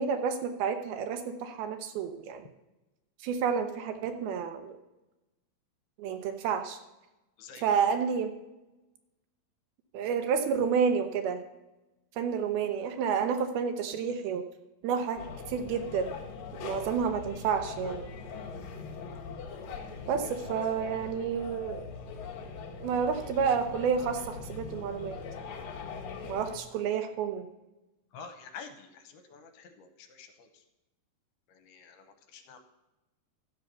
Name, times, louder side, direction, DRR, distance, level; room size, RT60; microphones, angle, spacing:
voice 1, 0.0-2.5 3.2-4.8 6.0-6.8 7.6-8.3 9.9-11.4 12.2-14.5 14.8-15.2 15.5-16.1 16.6-18.1 20.1-21.9 22.8-25.2 26.2-27.5, right 6 dB, 75° right, 7 dB, 2.5 m, -30 dB
sound 1, 15.2-26.6, left 5 dB, 60° left, 2.1 m, -41 dB
voice 2, 28.1-30.6 31.5-32.6, left 6 dB, 75° left, 7 dB, 2.8 m, -49 dB
12.5 x 5.5 x 6.8 m, 1.0 s
omnidirectional pair, 4.7 m